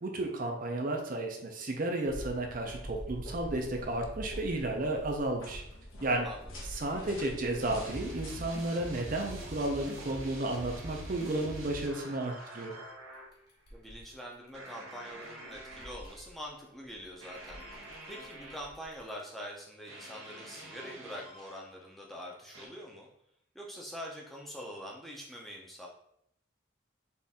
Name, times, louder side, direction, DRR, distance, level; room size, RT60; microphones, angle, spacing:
voice 1, 0.0-5.6 6.0-6.3 6.7-12.7, right 2 dB, 45° right, 2 dB, 0.6 m, -33 dB
sound 1, 2.1-10.9 13.1-14.9 15.2-19.1, equal, 50° left, 1.0 m, -47 dB
sound 2, 2.3-8.7, left 1 dB, 80° left, 1.0 m, -50 dB
sound 3, 7.6-13.3 14.5-16.3 17.2-18.6 19.9-21.6 22.5-22.7, right 1 dB, 85° right, 1.0 m, -45 dB
voice 2, 13.7-17.6 18.1-23.1 23.5-25.9, equal, ahead, -2 dB, 0.6 m, -44 dB
4.2 x 2.6 x 3.6 m, 0.73 s
head